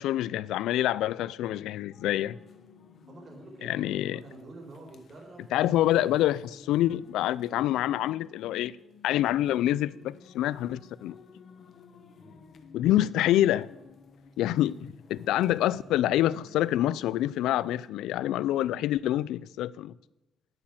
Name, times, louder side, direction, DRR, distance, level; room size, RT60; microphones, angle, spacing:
voice 1, 0.0-2.4 3.6-4.2 5.5-8.8 9.0-11.2 12.7-13.7 14.4-19.9, left 13 dB, 90° left, 0.3 m, -26 dB
sound 1, 1.9-17.9, left 5 dB, 60° left, 1.1 m, -54 dB
voice 2, 3.1-5.9 12.2-12.4, right 2 dB, 45° right, 4.5 m, -48 dB
9.8 x 8.9 x 7.3 m
cardioid pair, 90°, 0 cm